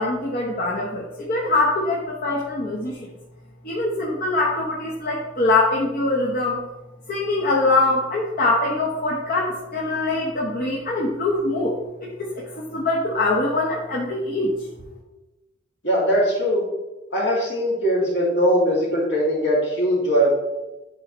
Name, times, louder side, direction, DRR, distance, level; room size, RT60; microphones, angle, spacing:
voice 1, 0.0-3.0 3.6-6.6 7.1-11.8 12.0-14.5, left 2 dB, 45° left, -3 dB, 0.9 m, -23 dB
voice 2, 15.8-16.6 17.1-20.3, equal, 60° left, -4 dB, 2.2 m, -20 dB
10.0 x 3.9 x 3.0 m, 1.0 s
head